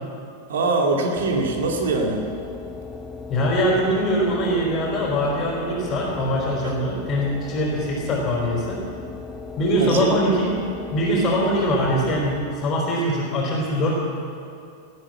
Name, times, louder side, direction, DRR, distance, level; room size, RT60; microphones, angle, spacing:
voice 1, 0.5-2.2 6.6-6.7 9.8-10.1, right 3 dB, 60° right, 1 dB, 2.3 m, -22 dB
sound 1, 1.2-12.9, left 4 dB, 10° left, 2.0 m, -37 dB
voice 2, 3.3-8.8 9.6-10.5 10.9-13.9, equal, 30° left, -4 dB, 4.2 m, -22 dB
18.5 x 8.8 x 8.7 m, 2.5 s
figure-of-eight pair, 90°, 0 cm